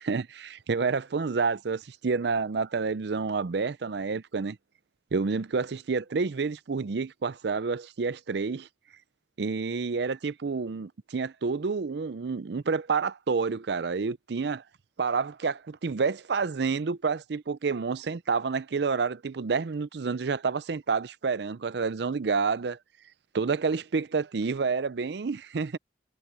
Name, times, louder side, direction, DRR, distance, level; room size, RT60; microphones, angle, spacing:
voice 1, 0.0-4.6 5.1-8.7 9.4-14.6 15.0-22.8 23.3-25.8, right 4 dB, 65° right, 0.5 m, -29 dB
head